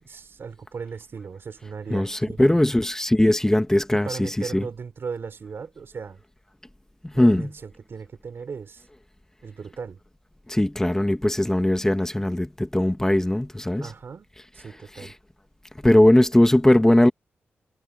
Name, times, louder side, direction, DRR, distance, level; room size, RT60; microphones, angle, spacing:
voice 1, 0.0-2.7 3.9-6.2 7.1-8.9 9.4-10.0 13.8-14.3 14.5-15.1, right 5 dB, 60° right, 3.6 m, -37 dB
voice 2, 1.9-4.6 7.2-7.5 10.5-13.9 15.8-17.1, left 1 dB, 10° left, 1.6 m, -19 dB
cardioid pair, 55°, 4 cm